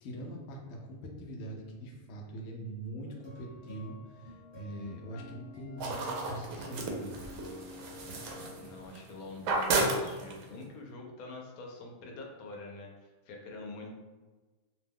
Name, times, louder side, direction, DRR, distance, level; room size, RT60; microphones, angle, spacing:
voice 1, 0.0-7.2, right 1 dB, 65° left, 0 dB, 0.8 m, -43 dB
sound 1, 3.1-8.9, left 2 dB, 20° right, 1.0 m, -51 dB
sound 2, 5.8-9.1 9.4-10.6, right 2 dB, 70° right, 0.9 m, -33 dB
voice 2, 8.6-12.9 13.3-13.9, left 3 dB, 85° left, 0 dB, 1.1 m, -45 dB
2.7 x 2.2 x 3.4 m, 1.3 s
omnidirectional pair, 1.5 m